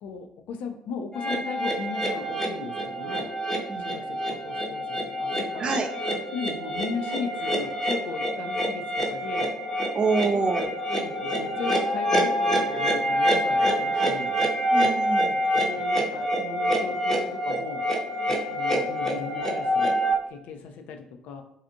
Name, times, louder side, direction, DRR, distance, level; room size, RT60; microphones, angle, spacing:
voice 1, 0.0-3.3 3.8-5.7 6.3-9.5 11.0-14.3 15.6-17.8 18.5-19.9 20.3-21.4, left 5 dB, 55° left, 5 dB, 0.3 m, -37 dB
sound 1, 1.1-20.1, equal, 10° left, 0.6 m, -26 dB
voice 2, 5.6-5.9 9.9-10.7 14.7-15.4, right 4 dB, 35° right, 5 dB, 0.4 m, -26 dB
2.6 x 2.4 x 2.6 m, 0.81 s
figure-of-eight pair, 50°, 3 cm